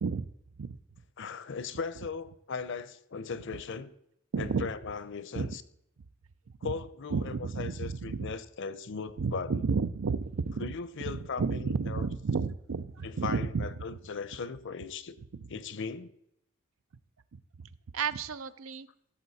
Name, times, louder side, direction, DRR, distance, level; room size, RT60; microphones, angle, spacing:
voice 1, 1.2-3.9 4.4-5.6 6.6-9.6 10.6-12.0 13.0-15.2 15.5-16.1, left 5 dB, 65° left, 0.7 m, -38 dB
voice 2, 4.3-4.7 5.3-5.6 6.6-6.7 7.1-8.3 9.2-10.7 11.1-13.8 17.3-17.4 17.9-18.9, right 5 dB, 70° right, 0.5 m, -32 dB
16.0 x 7.2 x 4.1 m
head